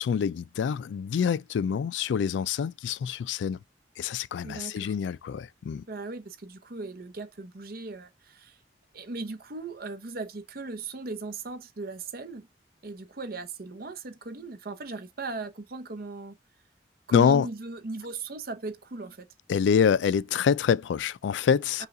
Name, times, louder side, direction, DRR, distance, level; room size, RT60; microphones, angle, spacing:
voice 1, 0.0-3.6 4.0-5.8 17.1-17.5 19.5-21.9, left 7 dB, 90° left, 0.3 m, -26 dB
voice 2, 4.4-5.0 5.9-8.6 8.9-12.5 12.8-16.4 17.1-19.3 21.8-21.9, right 3 dB, 55° right, 0.8 m, -38 dB
5.4 x 2.4 x 3.6 m
head